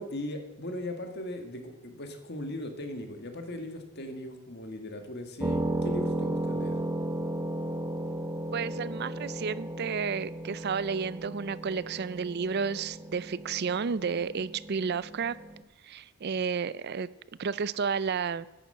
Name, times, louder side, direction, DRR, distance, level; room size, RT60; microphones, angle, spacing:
voice 1, 0.0-6.8, left 1 dB, 50° left, 6 dB, 1.8 m, -38 dB
sound 1, 5.4-15.6, right 1 dB, 15° right, 0.8 m, -35 dB
voice 2, 8.5-15.4 15.8-17.1 17.4-18.5, right 5 dB, 50° right, 18 dB, 0.4 m, -31 dB
10.5 x 10.0 x 7.8 m, 1.1 s
head